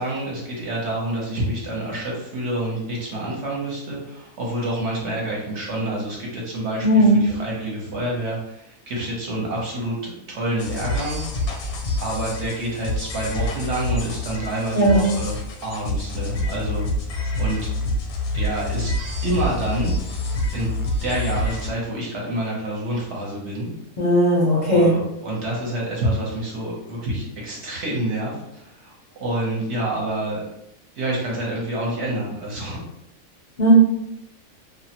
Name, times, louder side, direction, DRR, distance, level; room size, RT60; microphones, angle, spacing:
voice 1, 0.0-11.2 12.0-16.9 17.4-17.7 18.3-18.9 19.2-19.9 20.5-20.7 21.0-23.7 24.7-30.5 31.0-32.8, right 1 dB, 60° right, -4 dB, 1.0 m, -27 dB
voice 2, 6.8-7.2 14.7-15.1 24.0-24.9 33.6-33.7, equal, 50° left, -7 dB, 0.5 m, -16 dB
sound 1, 10.6-21.7, left 1 dB, 85° left, 1.0 m, -27 dB
2.5 x 2.1 x 2.8 m, 0.81 s
omnidirectional pair, 1.5 m